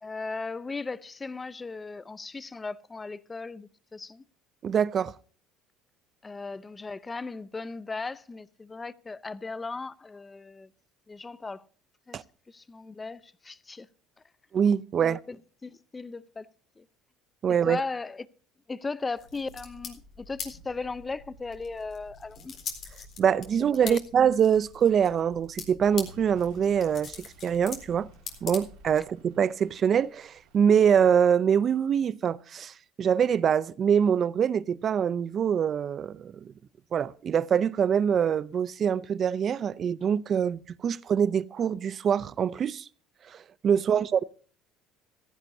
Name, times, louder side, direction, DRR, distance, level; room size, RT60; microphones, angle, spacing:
voice 1, 0.0-4.2 6.2-10.7 11.1-11.6 12.1-13.9 15.0-15.4 15.6-16.5 16.8-16.9 17.5-18.3 18.7-22.5 23.2-23.4 23.8-24.0 29.0-29.1 43.9-44.1, left 3 dB, 20° left, 0.7 m, -37 dB
voice 2, 4.6-5.1 12.1-12.2 14.5-15.2 17.4-17.8 23.2-28.1 28.4-36.5 36.9-42.9 43.3-44.2, right 8 dB, 40° right, 0.5 m, -24 dB
sound 1, 19.2-29.1, left 6 dB, 45° left, 3.9 m, -43 dB
Truck / Idling, 25.8-31.1, left 1 dB, 80° right, 3.3 m, -55 dB
15.5 x 15.0 x 2.7 m
cardioid pair, 110°, 0 cm